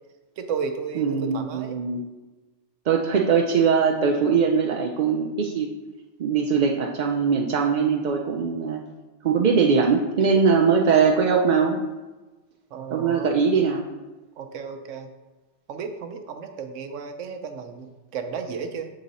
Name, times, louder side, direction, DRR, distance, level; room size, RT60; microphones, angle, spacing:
voice 1, 0.4-1.8 12.7-13.3 14.4-15.1 15.7-18.9, right 6 dB, 90° right, 7 dB, 1.0 m, -33 dB
voice 2, 1.0-2.0 2.9-5.7 6.2-8.8 9.2-11.8 12.9-13.8, right 5 dB, 60° right, 1 dB, 0.5 m, -21 dB
7.5 x 3.9 x 4.0 m, 1.2 s
omnidirectional pair, 1.2 m